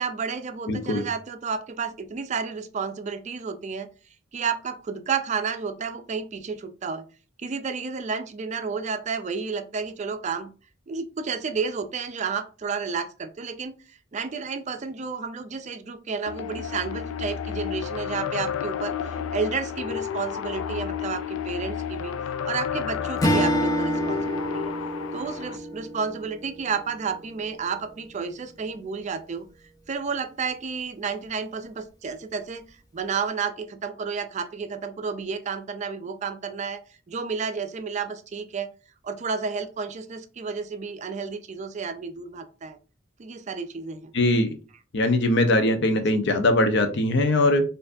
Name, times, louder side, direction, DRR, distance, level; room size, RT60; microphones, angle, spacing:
voice 1, 0.0-3.9 4.3-7.0 7.4-10.5 10.9-22.1 22.4-24.7 25.1-29.5 29.9-36.8 37.1-38.7 39.0-42.8 43.2-44.1, right 5 dB, 35° right, 9 dB, 0.4 m, -31 dB
voice 2, 0.7-1.0 44.1-44.5 44.9-47.6, left 1 dB, 60° left, 8 dB, 0.7 m, -21 dB
sound 1, 16.3-25.6, left 8 dB, 90° left, 0.3 m, -31 dB
Strum, 23.2-27.8, equal, 20° left, 0.6 m, -28 dB
4.4 x 2.6 x 2.6 m, 0.36 s
head